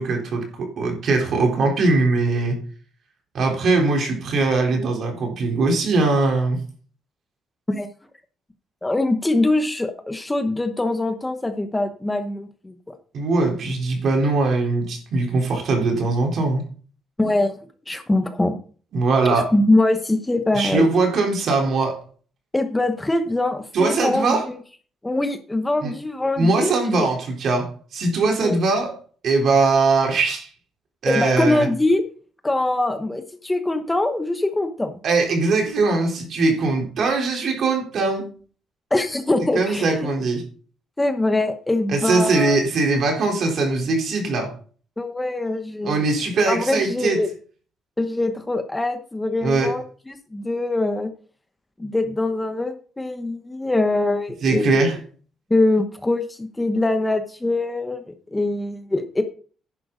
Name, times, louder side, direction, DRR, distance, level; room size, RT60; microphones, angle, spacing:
voice 1, 0.0-2.6 3.3-6.6 13.1-16.6 18.9-19.5 20.5-22.0 23.7-24.5 25.8-25.9 26.4-29.0 29.2-30.5 31.0-31.7 35.0-38.3 39.6-40.5 41.9-44.5 45.8-47.2 49.4-49.7 54.4-55.0, right 3 dB, 55° right, 3.9 m, -21 dB
voice 2, 8.8-12.9 17.2-17.5 17.9-18.6 19.2-20.9 22.5-24.6 25.0-27.1 28.4-28.6 31.1-32.0 32.4-35.0 38.9-40.1 41.0-42.6 45.0-46.0 46.5-47.3 48.0-51.1 51.8-54.8 55.5-59.2, left 2 dB, 10° left, 1.0 m, -23 dB
11.0 x 10.0 x 3.9 m
cardioid pair, 145°, 0 cm